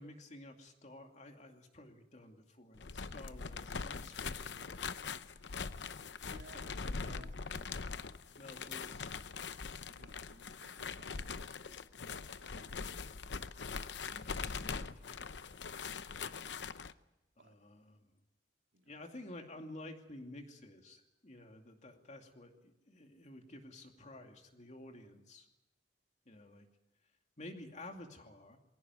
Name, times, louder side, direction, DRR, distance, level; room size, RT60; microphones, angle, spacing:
voice 1, 0.0-4.9 6.8-7.2 8.4-9.1 14.0-15.9 17.4-18.0 18.9-25.5 26.3-26.6 27.4-28.6, left 1 dB, 45° left, 4 dB, 2.5 m, -52 dB
sound 1, 2.7-16.9, left 5 dB, 85° left, 0.8 m, -42 dB
voice 2, 6.3-6.7 7.0-7.9 8.8-9.1 9.8-13.9 16.0-16.3 17.4-17.5 18.7-19.0, right 2 dB, 85° right, 4 dB, 2.2 m, -62 dB
22.0 x 17.0 x 9.5 m, 0.95 s
head